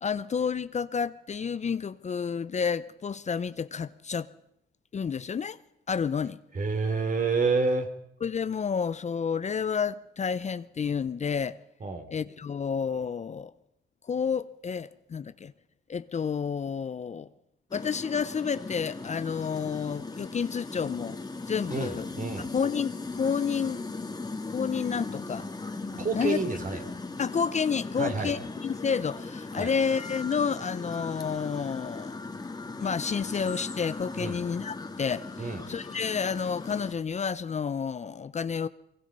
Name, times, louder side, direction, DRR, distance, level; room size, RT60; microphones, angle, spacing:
voice 1, 0.0-4.3 4.9-5.6 5.9-6.4 8.2-11.6 12.1-13.5 14.0-15.5 15.9-17.3 17.7-21.2 21.5-22.1 22.4-23.9 24.5-25.5 26.1-26.4 27.2-32.2 32.8-38.7, left 6 dB, 35° left, 0.7 m, -30 dB
voice 2, 6.5-7.9 11.8-12.1 21.7-22.5 26.0-26.8 28.0-28.3 29.6-29.7 34.2-34.4 35.4-35.6, right 4 dB, 40° right, 3.6 m, -28 dB
sound 1, 17.7-36.9, left 3 dB, 20° left, 2.1 m, -38 dB
23.5 x 23.5 x 5.5 m
cardioid pair, 90°, 20 cm